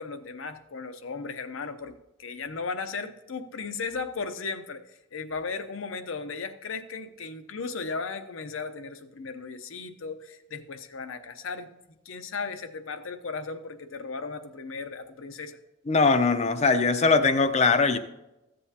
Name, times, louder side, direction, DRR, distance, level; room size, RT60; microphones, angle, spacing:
voice 1, 0.0-1.9 2.2-11.7 12.0-15.6, left 4 dB, 70° left, 8 dB, 0.7 m, -36 dB
voice 2, 15.9-18.0, left 4 dB, 30° left, 9 dB, 0.5 m, -21 dB
14.0 x 7.8 x 2.8 m, 0.94 s
head